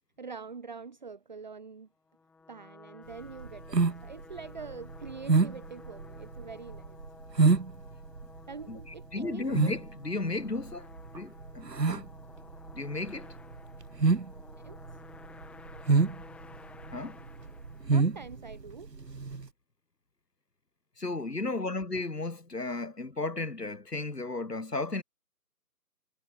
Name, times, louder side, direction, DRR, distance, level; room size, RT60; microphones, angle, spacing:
voice 1, 0.2-1.9 2.5-7.0 8.5-9.5 14.6-15.0 17.9-18.9 21.5-21.6, right 5 dB, 30° right, 1.4 m, -45 dB
sound 1, 2.1-18.4, left 4 dB, ahead, 4.8 m, -53 dB
sound 2, 3.1-19.5, right 4 dB, 85° right, 1.4 m, -28 dB
voice 2, 9.1-10.9 11.1-12.1 12.7-13.3 16.9-17.2 21.0-25.0, left 3 dB, 75° left, 3.5 m, -34 dB
figure-of-eight pair, 155°, 48 cm